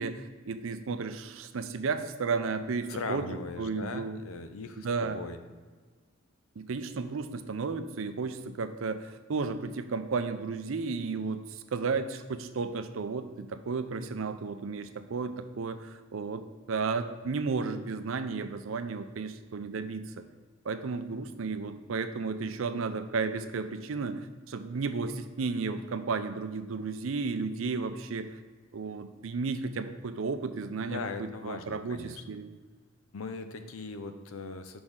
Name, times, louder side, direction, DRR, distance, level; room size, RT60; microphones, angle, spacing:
voice 1, 0.0-3.3 3.6-4.2 4.8-5.2 6.6-20.3 20.6-28.4 28.7-32.5, right 4 dB, 75° right, 10 dB, 0.5 m, -33 dB
voice 2, 2.9-5.4 30.9-32.2 33.1-34.8, left 4 dB, 90° left, 8 dB, 0.6 m, -39 dB
6.2 x 5.1 x 3.7 m, 1.4 s
head